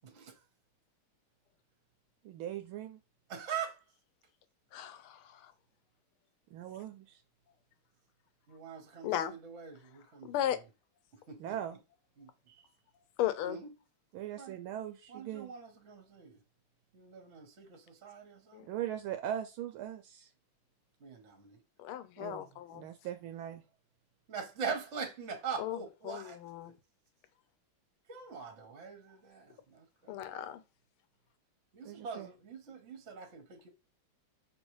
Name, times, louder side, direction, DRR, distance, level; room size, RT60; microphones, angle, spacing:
voice 1, 0.0-0.4 3.3-3.8 8.5-10.5 11.3-11.6 12.2-12.3 13.4-13.7 14.4-14.5 15.1-16.4 16.9-18.6 21.0-21.6 24.3-26.4 28.1-30.2 31.7-33.7, right 6 dB, 45° right, 1.0 m, -43 dB
voice 2, 2.2-3.0 6.5-7.2 11.4-11.8 12.5-12.6 14.1-15.5 18.7-20.3 22.2-22.5 22.7-23.6 31.8-32.3, right 11 dB, 75° right, 1.3 m, -40 dB
voice 3, 4.7-5.2 9.0-9.3 10.3-10.6 13.2-13.6 18.5-18.7 21.8-22.8 25.6-25.8 26.1-26.7 30.1-30.6, left 12 dB, 80° left, 1.5 m, -35 dB
5.4 x 3.0 x 3.1 m
omnidirectional pair, 2.4 m